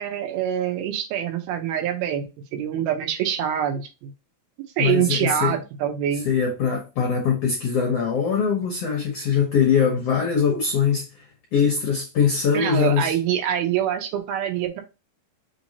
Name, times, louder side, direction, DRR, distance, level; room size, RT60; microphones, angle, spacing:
voice 1, 0.0-2.3 2.5-4.1 4.8-6.3 12.5-14.8, right 10 dB, 80° right, 2.9 m, -25 dB
voice 2, 4.8-5.6 6.2-11.2 11.5-13.1, left 6 dB, 80° left, 1.4 m, -22 dB
6.1 x 3.1 x 2.7 m
omnidirectional pair, 4.3 m